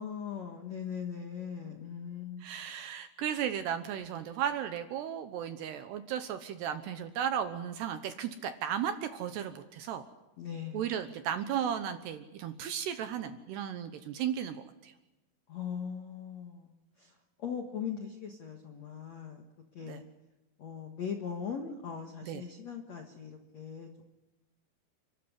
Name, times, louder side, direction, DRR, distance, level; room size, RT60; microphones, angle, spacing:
voice 1, 0.0-2.6 10.4-10.9 15.5-16.7 17.0-17.1 17.4-19.4 19.7-20.0 20.6-23.9, left 7 dB, 65° left, 3 dB, 1.7 m, -40 dB
voice 2, 2.4-10.0 10.7-14.6 14.8-14.9 19.8-20.0 22.3-22.4, right 9 dB, 75° right, 9 dB, 2.7 m, -35 dB
30.0 x 13.5 x 9.7 m, 1.0 s
omnidirectional pair, 5.7 m